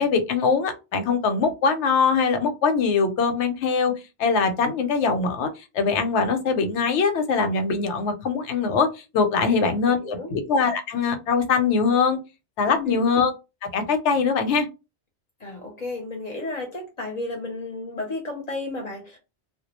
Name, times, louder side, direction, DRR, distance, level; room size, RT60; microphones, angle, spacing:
voice 1, 0.0-3.9 4.2-5.5 5.7-8.9 9.1-12.2 12.6-13.3 13.7-14.7, left 5 dB, 85° left, 8 dB, 0.9 m, -22 dB
voice 2, 10.0-10.3 12.7-13.0 15.4-19.2, left 2 dB, 45° left, 1 dB, 0.6 m, -33 dB
2.3 x 2.1 x 2.9 m, 0.27 s
omnidirectional pair, 1.2 m